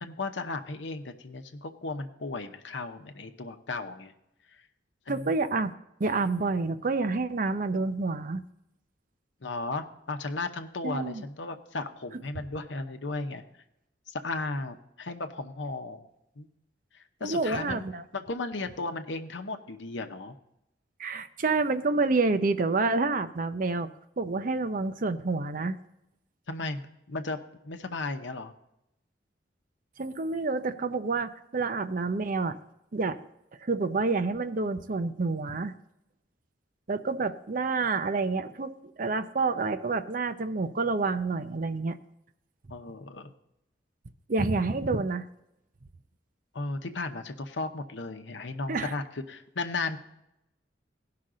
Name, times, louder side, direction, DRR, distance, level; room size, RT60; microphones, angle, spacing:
voice 1, 0.0-4.1 4.5-4.6 5.1-5.3 9.4-13.4 14.1-16.0 16.4-16.5 16.9-17.8 18.1-20.3 26.5-27.4 27.6-28.5 42.7-43.3 46.5-50.0, left 3 dB, 80° left, 7 dB, 0.9 m, -35 dB
voice 2, 5.1-5.7 6.0-8.4 10.8-11.2 17.2-18.0 21.0-23.9 24.2-25.8 30.0-32.6 32.9-33.2 33.6-35.7 36.9-42.0 44.3-45.2 48.7-48.9, right 3 dB, 50° right, 10 dB, 0.6 m, -28 dB
17.0 x 5.8 x 3.8 m, 0.84 s
head